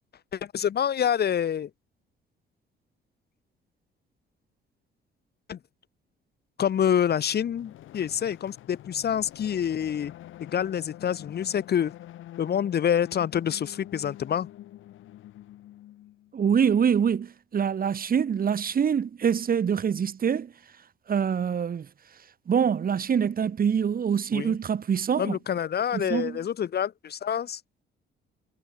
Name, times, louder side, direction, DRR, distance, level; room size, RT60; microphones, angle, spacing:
voice 1, 0.3-1.7 5.5-5.6 6.6-10.1 10.4-11.9 12.4-14.5 24.3-24.6 25.2-27.6, left 9 dB, 55° left, 1.5 m, -27 dB
sound 1, 7.1-16.3, left 13 dB, 80° left, 6.5 m, -46 dB
voice 2, 16.3-20.5 21.1-21.9 22.5-25.4 25.9-26.4, right 7 dB, 45° right, 2.1 m, -25 dB
cardioid pair, 90°, 20 cm